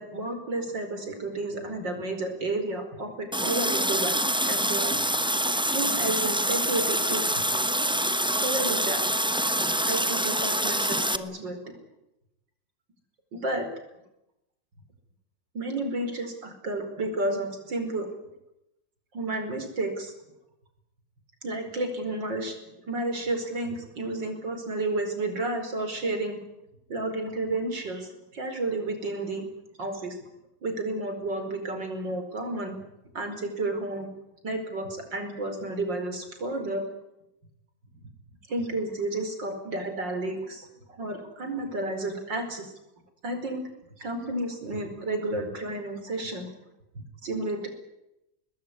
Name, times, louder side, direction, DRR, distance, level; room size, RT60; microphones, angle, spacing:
voice 1, 0.0-4.2 4.5-5.0 5.7-7.4 8.3-9.0 9.8-11.7 13.3-13.7 15.5-18.1 19.1-20.1 21.4-22.6 22.9-26.4 26.9-29.5 29.8-30.2 30.6-32.8 33.1-34.1 34.4-36.8 38.5-40.7 41.0-42.7 43.2-43.6 44.0-46.5 47.2-47.7, right 2 dB, 70° right, 6 dB, 5.5 m, -31 dB
Water tap faucet, 3.3-11.2, right 1 dB, 5° right, 0.6 m, -26 dB
22.5 x 20.5 x 9.9 m, 0.87 s
omnidirectional pair, 2.1 m